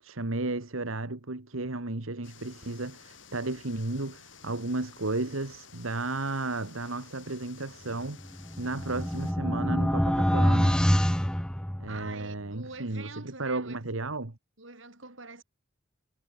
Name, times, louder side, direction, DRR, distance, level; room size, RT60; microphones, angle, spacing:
voice 1, 0.0-8.2 8.6-10.9 11.8-14.4, right 2 dB, 90° right, 1.8 m, -33 dB
sound 1, 2.2-9.3, left 6 dB, 70° left, 5.1 m, -53 dB
sound 2, 8.2-12.2, equal, 5° left, 0.7 m, -26 dB
voice 2, 11.9-13.9 14.6-15.4, right 4 dB, 75° right, 6.9 m, -45 dB
head